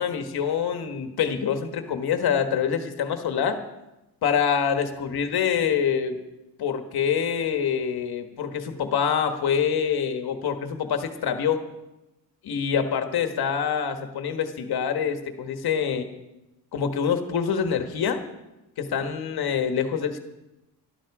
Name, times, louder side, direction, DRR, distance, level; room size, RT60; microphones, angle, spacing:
voice 1, 0.0-3.6 4.2-6.2 6.6-11.6 12.4-16.1 16.7-18.2 18.8-20.2, left 7 dB, 75° left, 6 dB, 1.7 m, -25 dB
19.5 x 12.5 x 4.9 m, 0.98 s
wide cardioid pair, 145°, 38 cm